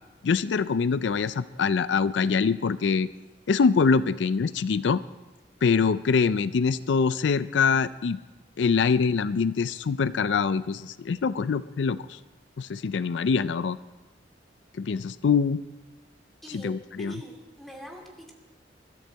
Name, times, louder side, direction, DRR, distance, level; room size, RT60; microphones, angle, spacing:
voice 1, 0.2-3.1 3.5-5.0 5.6-8.2 8.6-12.2 12.6-13.8 14.8-15.6 16.5-17.1, left 5 dB, 80° left, 15 dB, 0.4 m, -24 dB
voice 2, 16.4-16.7 17.0-18.3, equal, ahead, 0 dB, 2.5 m, -43 dB
21.0 x 13.5 x 4.6 m, 1.1 s
head